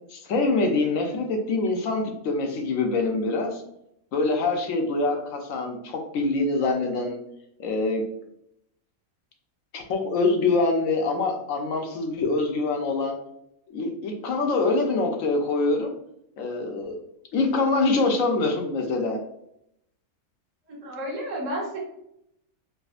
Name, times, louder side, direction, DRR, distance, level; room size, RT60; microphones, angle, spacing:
voice 1, 0.1-3.6 4.1-7.2 7.6-8.0 9.7-13.2 13.7-16.0 16.4-16.9 17.3-19.2, left 3 dB, 70° left, 3 dB, 1.0 m, -25 dB
voice 2, 20.7-21.8, right 1 dB, 30° right, -4 dB, 0.9 m, -31 dB
4.8 x 2.1 x 2.4 m, 0.77 s
omnidirectional pair, 1.5 m